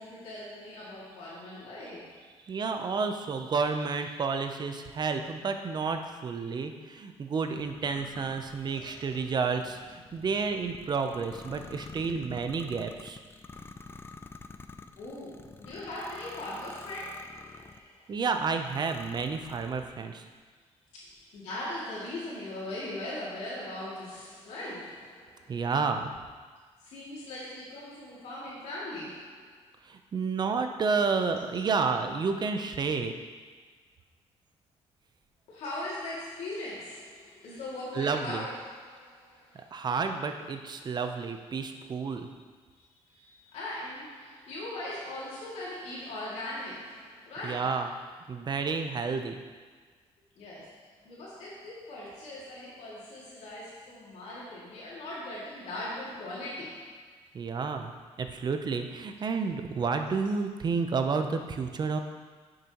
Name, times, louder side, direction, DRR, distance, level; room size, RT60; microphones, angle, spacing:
voice 1, 0.0-2.2 6.4-6.6 8.8-8.9 15.0-18.2 20.9-25.7 26.8-29.6 35.5-39.7 41.7-42.2 43.1-47.9 50.4-57.0, left 1 dB, 75° left, -9 dB, 2.5 m, -40 dB
voice 2, 2.5-13.2 18.1-20.2 25.5-26.1 29.9-33.1 37.9-38.4 39.5-42.3 47.4-47.9 48.3-49.4 57.3-57.9 58.2-62.0, right 5 dB, 40° right, 6 dB, 0.7 m, -30 dB
sound 1, 7.6-17.9 18.4-20.1, left 3 dB, 20° left, 0.4 m, -48 dB
10.0 x 6.6 x 3.0 m, 1.5 s
cardioid pair, 110°, 11 cm